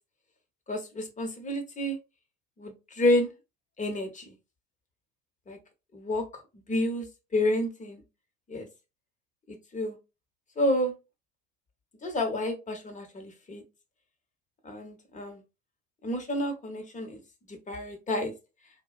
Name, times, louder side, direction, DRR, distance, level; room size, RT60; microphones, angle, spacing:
voice 1, 0.7-2.0 2.6-3.3 3.8-4.3 5.5-5.6 5.9-6.3 6.7-7.1 7.3-8.0 8.5-8.7 9.5-10.0 10.6-10.9 12.0-13.6 14.6-15.4 16.0-17.2 17.5-18.3, left 1 dB, 20° left, 4 dB, 0.9 m, -29 dB
2.6 x 2.1 x 2.3 m, 0.27 s
hypercardioid pair, 80°, 33 cm